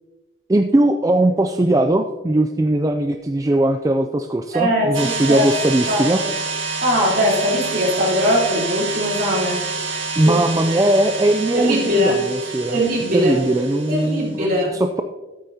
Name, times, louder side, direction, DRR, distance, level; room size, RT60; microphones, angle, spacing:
voice 1, 0.5-6.2 10.2-12.8 13.1-15.0, right 1 dB, 15° right, 6 dB, 0.3 m, -19 dB
voice 2, 4.5-5.5 5.9-6.3 6.8-9.6 10.3-10.4 10.7-10.8 11.5-12.2 12.7-13.3 13.9-14.8, equal, 45° right, -5 dB, 3.6 m, -20 dB
sound 1, 4.9-14.3, right 4 dB, 80° right, 1.8 m, -28 dB
13.0 x 8.7 x 2.8 m, 1.2 s
head